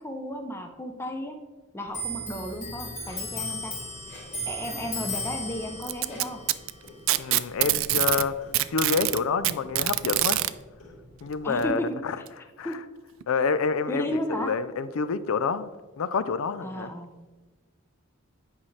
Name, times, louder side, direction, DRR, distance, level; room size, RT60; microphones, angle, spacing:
voice 1, 0.0-1.4 1.7-3.7 4.5-6.4 11.4-11.9 12.6-12.8 13.9-14.5 16.6-17.1, equal, 10° left, 4 dB, 0.5 m, -33 dB
Clock, 1.9-8.9 9.2-10.5 10.8-11.7, left 1 dB, 35° left, 2.2 m, -37 dB
Clock 2, 3.0-8.5, left 2 dB, 55° left, 2.2 m, -51 dB
Packing tape duct tape, 5.8-8.3 8.5-10.5 11.6-11.7 12.3-12.4 13.2-13.3, right 16 dB, 70° right, 0.3 m, -24 dB
voice 2, 7.2-10.4 11.2-12.2 12.6-12.8 13.3-16.9, left 5 dB, 80° left, 14 dB, 0.4 m, -28 dB
8.8 x 5.6 x 3.2 m, 1.3 s
head